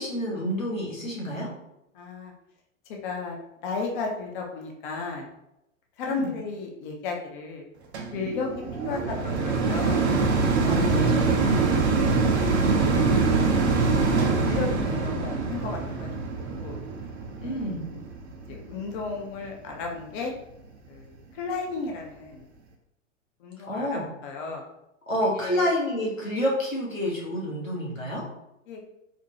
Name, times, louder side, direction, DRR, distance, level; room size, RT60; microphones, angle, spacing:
voice 1, 0.0-1.5 6.1-6.3 10.7-11.8 17.4-17.9 23.7-24.0 25.1-28.2, equal, 90° left, -5 dB, 1.3 m, -29 dB
voice 2, 1.9-2.3 2.9-3.4 3.6-5.3 6.0-7.6 8.1-8.5 8.8-10.0 11.8-12.2 12.7-13.5 14.2-16.8 17.4-18.1 18.5-20.3 20.9-22.4 23.4-24.6 25.3-25.7 28.7-28.8, left 4 dB, 40° left, 1 dB, 0.6 m, -34 dB
sound 1, 7.9-19.2 19.8-19.9, right 4 dB, 55° right, 0.7 m, -24 dB
4.2 x 2.2 x 2.8 m, 0.85 s
figure-of-eight pair, 105°, 39 cm